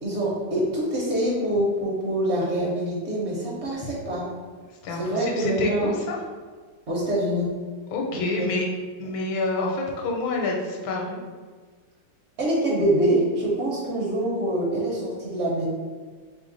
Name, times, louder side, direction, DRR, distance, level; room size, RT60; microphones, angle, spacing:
voice 1, 0.0-4.2 4.9-6.0 6.9-7.5 8.1-8.5 12.4-15.7, right 1 dB, 55° right, -4 dB, 0.7 m, -25 dB
voice 2, 4.8-6.2 7.9-8.6 9.0-11.2, left 3 dB, 70° left, 0 dB, 1.5 m, -28 dB
3.4 x 3.4 x 3.9 m, 1.5 s
omnidirectional pair, 2.3 m